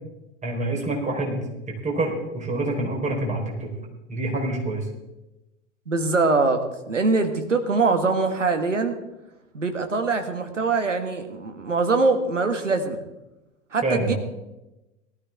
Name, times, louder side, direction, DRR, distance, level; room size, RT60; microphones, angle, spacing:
voice 1, 0.4-1.4 1.8-3.7 4.1-4.9 13.8-14.2, right 2 dB, 20° right, 0 dB, 4.2 m, -26 dB
voice 2, 5.9-9.0 9.5-13.0 13.7-14.1, right 3 dB, 80° right, 7 dB, 1.7 m, -23 dB
18.5 x 13.0 x 3.6 m, 0.97 s
figure-of-eight pair, 90°, 37 cm